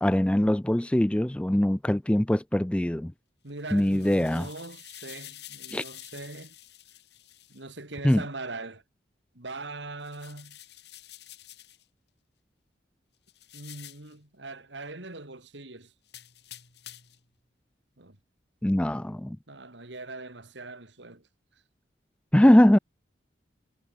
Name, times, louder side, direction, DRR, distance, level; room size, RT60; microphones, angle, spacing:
voice 1, 0.0-3.1 3.7-4.5 5.7-5.8 8.0-8.2 18.6-19.4 22.3-22.8, left 1 dB, 5° left, 0.3 m, -22 dB
voice 2, 3.4-6.5 7.5-8.8 9.3-10.6 13.5-15.9 18.0-18.2 19.5-21.3, right 2 dB, 75° right, 2.9 m, -41 dB
sound 1, 3.5-7.6 10.0-11.8 13.3-14.1 16.1-17.2, left 13 dB, 65° left, 5.4 m, -48 dB
head